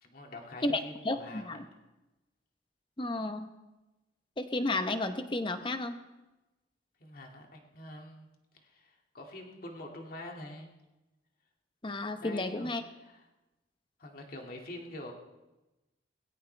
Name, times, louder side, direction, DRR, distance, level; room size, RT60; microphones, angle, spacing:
voice 1, 0.0-1.6 7.0-8.3 8.6-10.7 12.1-12.7 13.0-13.2 14.0-15.1, left 1 dB, 55° left, 1 dB, 2.2 m, -45 dB
voice 2, 0.6-1.6 3.0-3.5 4.4-6.0 11.8-12.8, left 2 dB, 25° left, 8 dB, 0.9 m, -32 dB
19.5 x 16.5 x 3.4 m, 1.1 s
head